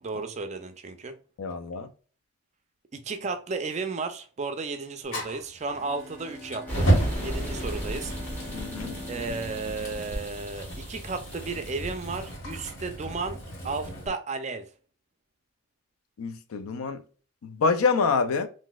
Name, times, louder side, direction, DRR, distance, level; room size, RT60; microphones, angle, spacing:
voice 1, 0.0-1.1 2.9-6.9 7.2-8.1 9.1-13.4 13.6-14.7, right 4 dB, 35° right, 0.4 m, -33 dB
voice 2, 1.4-1.9 8.5-9.0 16.2-17.0 17.4-18.5, left 4 dB, 90° left, 0.4 m, -26 dB
Fire, 5.1-14.1, right 1 dB, 70° left, 1.5 m, -32 dB
Bowed string instrument, 5.6-11.2, left 1 dB, 40° left, 0.9 m, -44 dB
sound 1, 6.7-12.3, equal, 10° left, 0.9 m, -36 dB
3.9 x 2.6 x 2.3 m
head